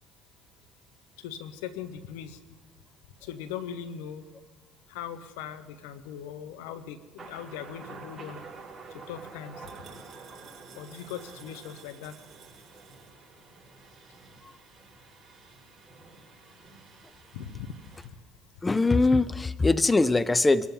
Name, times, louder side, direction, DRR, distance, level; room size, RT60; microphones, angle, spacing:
voice 1, 1.2-2.4 3.2-4.2 4.9-8.4 9.1-9.7 10.7-12.1 17.3-17.8 18.0-18.1, left 9 dB, 85° left, 12 dB, 1.0 m, -39 dB
Thunder, 7.2-18.1, right 4 dB, 25° right, 6.1 m, -49 dB
sound 1, 8.5-13.1, right 8 dB, 45° right, 2.6 m, -55 dB
voice 2, 18.6-20.7, left 3 dB, 15° left, 18 dB, 0.5 m, -22 dB
23.5 x 13.5 x 3.9 m, 1.2 s
supercardioid pair, 80°, 0 cm